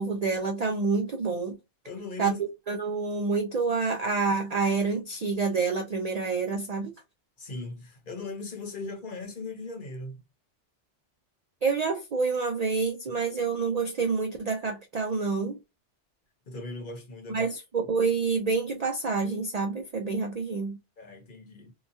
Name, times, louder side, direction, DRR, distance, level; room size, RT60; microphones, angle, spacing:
voice 1, 0.0-1.6 2.2-6.9 11.6-15.6 17.3-17.5 17.9-20.8, right 4 dB, 65° right, 0.4 m, -28 dB
voice 2, 1.8-2.4 7.4-10.2 16.5-17.5 21.0-21.7, left 3 dB, 50° left, 0.9 m, -39 dB
2.9 x 2.2 x 2.6 m
omnidirectional pair, 1.2 m